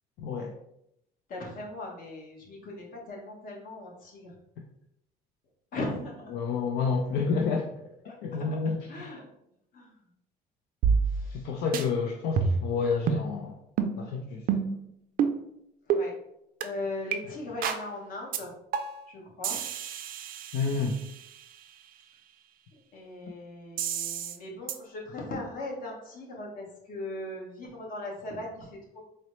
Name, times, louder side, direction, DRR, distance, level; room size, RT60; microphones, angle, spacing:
voice 1, 0.2-0.5 6.3-7.7 8.2-9.0 11.3-13.5 14.0-14.6 20.5-21.0, left 5 dB, 80° left, 1 dB, 0.5 m, -29 dB
voice 2, 1.3-4.3 5.7-6.3 8.0-8.4 8.9-9.2 9.7-9.9 11.1-11.4 15.9-16.1 16.6-18.5 19.1-19.6 22.9-29.0, left 2 dB, 55° left, -1 dB, 1.1 m, -38 dB
sound 1, 10.8-11.5 11.7-11.8 12.4-12.7 13.1-13.3 13.8-13.9 14.5-14.8 15.2-15.4 15.9-16.0 16.6-16.7 17.1-17.2 17.6-17.8 18.3-18.4 18.7-19.1 19.4-21.3 23.8-24.4 24.7-24.8, right 6 dB, 60° right, 0.4 m, -28 dB
3.9 x 2.0 x 3.0 m, 0.78 s
cardioid pair, 110°, 17 cm